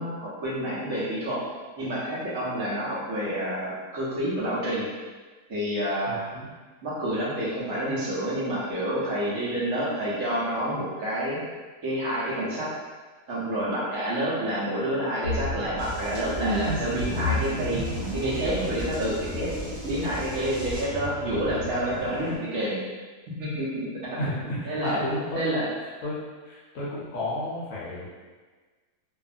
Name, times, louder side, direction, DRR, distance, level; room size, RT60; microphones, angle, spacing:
voice 1, 0.0-1.4 1.8-4.9 5.5-6.2 6.8-11.4 11.8-12.7 13.3-17.8 18.1-19.5 19.8-22.8 23.4-25.0 25.3-25.7, right 1 dB, 60° right, -8 dB, 1.1 m, -28 dB
voice 2, 6.1-6.5 24.2-25.5 26.0-28.1, left 1 dB, 65° left, -7 dB, 0.8 m, -32 dB
sound 1, 15.2-22.4, left 1 dB, 40° left, 1.0 m, -33 dB
sound 2, 15.8-20.8, right 1 dB, 15° right, 1.0 m, -37 dB
2.7 x 2.5 x 2.4 m, 1.4 s
omnidirectional pair, 1.8 m